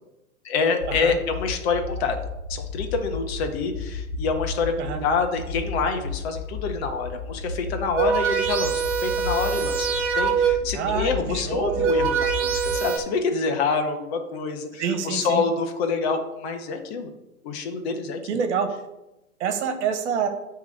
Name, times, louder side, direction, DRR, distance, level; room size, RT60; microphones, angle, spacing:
voice 1, 0.4-2.2 2.5-4.7 5.0-17.1 17.4-18.2, left 4 dB, 45° left, 5 dB, 1.4 m, -27 dB
sound 1, 0.8-12.8, left 4 dB, 75° left, 1.1 m, -34 dB
sound 2, 8.0-10.8 11.5-13.0, right 6 dB, 30° right, 2.0 m, -24 dB
voice 2, 10.7-11.9 14.8-15.4 18.3-18.7 19.4-20.3, right 7 dB, 55° right, 7 dB, 1.5 m, -27 dB
9.6 x 3.7 x 6.8 m, 0.96 s
hypercardioid pair, 110°, 42 cm